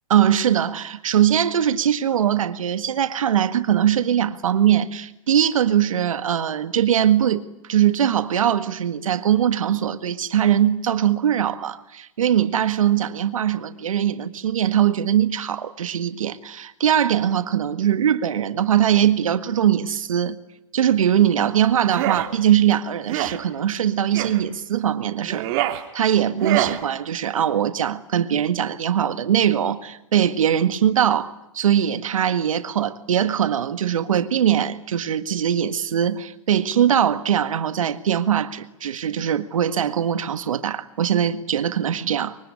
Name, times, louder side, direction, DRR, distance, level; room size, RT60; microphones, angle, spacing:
voice 1, 0.1-20.4 20.7-25.5 25.9-42.4, right 10 dB, 85° right, 1.8 m, -21 dB
sound 1, 21.8-22.3 23.0-23.4 24.1-24.4 25.2-25.8 26.4-26.8, right 14 dB, 50° right, 2.9 m, -25 dB
24.0 x 24.0 x 9.8 m
hypercardioid pair, 130°, 17 cm